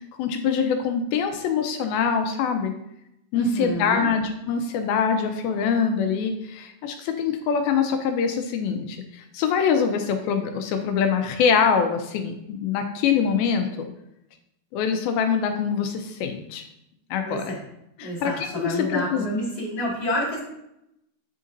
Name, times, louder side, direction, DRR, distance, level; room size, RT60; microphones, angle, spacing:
voice 1, 0.2-2.7 3.3-13.9 14.7-16.6 17.1-17.5 18.0-19.3, left 6 dB, 80° left, 5 dB, 2.3 m, -24 dB
voice 2, 3.3-4.1 17.2-17.6 18.0-20.4, equal, 35° left, -8 dB, 1.8 m, -28 dB
10.0 x 3.8 x 2.6 m, 0.83 s
omnidirectional pair, 4.4 m